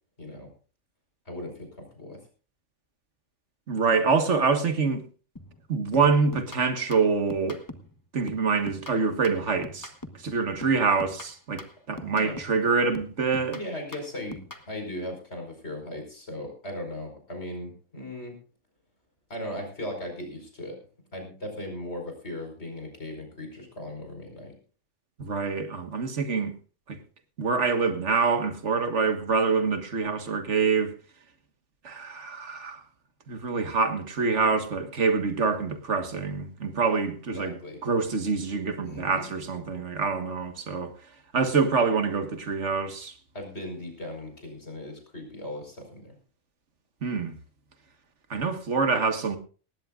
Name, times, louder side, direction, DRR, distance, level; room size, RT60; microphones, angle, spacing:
voice 1, 0.2-0.5 1.2-2.2 11.9-12.3 13.5-18.3 19.3-20.8 21.1-24.5 37.3-37.8 38.8-39.3 43.3-46.1, left 1 dB, 55° left, 5.1 m, -38 dB
voice 2, 3.7-5.0 5.7-7.6 8.1-9.9 10.2-13.6 25.2-26.5 26.9-27.0 27.4-30.9 31.8-32.8 33.3-40.9 41.3-43.1 47.0-47.4 48.3-49.4, right 4 dB, 65° right, 1.8 m, -26 dB
sound 1, 5.4-5.6 5.9-8.0 8.3-10.3 10.6-12.6 12.9-14.7, left 1 dB, 15° left, 1.0 m, -43 dB
19.0 x 16.0 x 2.5 m
omnidirectional pair, 1.3 m